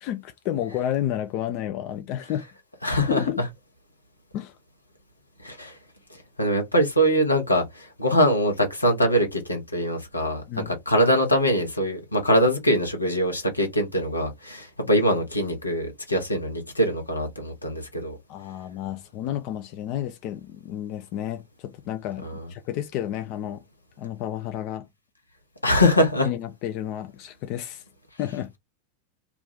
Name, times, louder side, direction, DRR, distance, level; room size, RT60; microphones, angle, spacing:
voice 1, 0.0-2.4 3.1-3.4 4.3-4.5 10.5-10.7 18.3-23.6 24.0-24.9 26.2-27.8 28.2-28.5, left 11 dB, 40° left, 0.4 m, -31 dB
voice 2, 2.8-3.2 5.4-5.8 6.4-18.2 22.2-22.5 25.6-26.3, equal, 85° left, 0.9 m, -23 dB
2.4 x 2.3 x 3.5 m
figure-of-eight pair, 90°, 0 cm